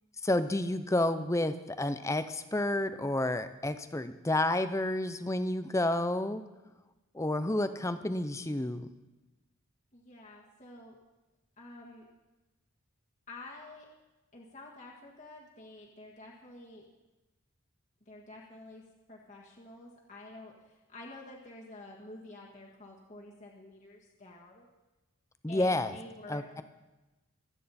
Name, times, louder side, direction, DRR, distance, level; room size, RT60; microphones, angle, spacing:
voice 1, 0.2-6.4 7.1-8.9 25.4-25.9 26.3-26.6, left 1 dB, 15° left, 11 dB, 0.6 m, -30 dB
voice 2, 9.9-10.9 11.6-12.1 13.3-13.9 14.3-16.9 18.0-18.8 19.1-24.7 25.5-26.6, left 2 dB, 35° left, -3 dB, 1.7 m, -49 dB
24.0 x 9.1 x 4.3 m, 1.1 s
head